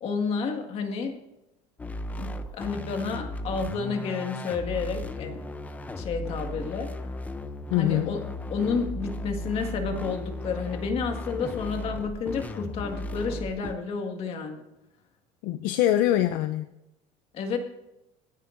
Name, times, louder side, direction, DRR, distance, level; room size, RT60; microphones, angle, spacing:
voice 1, 0.0-1.2 2.2-5.5 6.0-7.1 7.7-8.2 8.5-14.7 17.3-17.6, left 5 dB, 40° left, 5 dB, 1.8 m, -30 dB
sound 1, 1.8-13.7, left 1 dB, 10° left, 0.6 m, -36 dB
voice 2, 7.7-8.1 15.4-16.7, left 13 dB, 65° left, 9 dB, 0.6 m, -24 dB
26.5 x 9.6 x 2.6 m, 0.93 s
cardioid pair, 160°, 16 cm